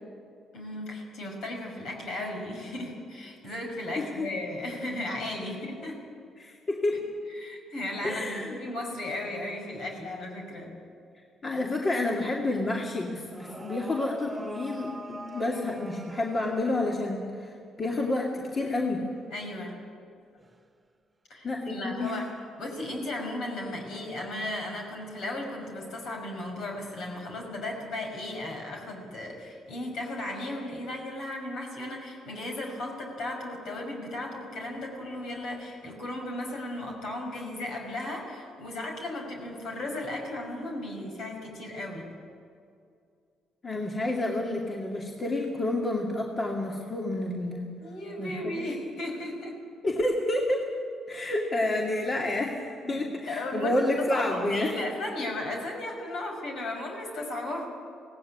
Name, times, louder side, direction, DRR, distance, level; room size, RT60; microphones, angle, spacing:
voice 1, 0.5-6.0 7.4-10.7 19.3-19.8 21.3-22.3 22.6-42.1 47.8-49.6 52.8-57.7, left 1 dB, 70° left, 1 dB, 5.8 m, -35 dB
voice 2, 4.0-4.3 6.4-7.0 8.0-8.6 11.4-17.5 17.8-19.1 21.4-22.2 43.6-47.7 48.2-48.7 49.8-50.8 51.1-54.8, left 2 dB, 40° left, -1 dB, 2.4 m, -29 dB
sound 1, 13.3-17.1 18.4-18.8 20.4-20.6 24.4-24.7 26.0-26.1, right 1 dB, 20° right, 1.5 m, -43 dB
17.5 x 16.5 x 9.7 m, 2.3 s
supercardioid pair, 60°, 0 cm